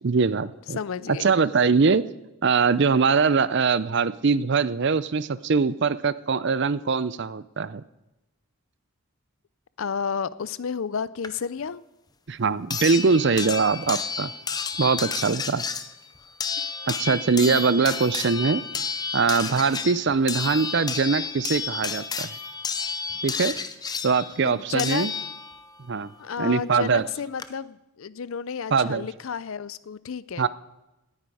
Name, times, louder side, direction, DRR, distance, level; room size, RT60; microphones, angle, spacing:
voice 1, 0.0-0.8 1.1-2.0 2.4-7.8 12.3-14.3 14.8-15.6 16.9-18.6 19.1-22.3 23.2-23.5 24.0-25.1 25.9-26.1 26.4-27.0 28.7-29.1 30.4-30.5, right 5 dB, 50° right, 17 dB, 0.5 m, -22 dB
voice 2, 0.8-1.3 9.8-11.8 17.1-17.2 24.4-25.1 26.2-30.5, left 6 dB, 65° left, 18 dB, 0.5 m, -31 dB
sound 1, 11.2-11.3 12.7-25.7 27.0-27.1 27.4-27.5, left 5 dB, 15° left, 0.5 m, -31 dB
18.0 x 9.7 x 4.9 m, 0.97 s
head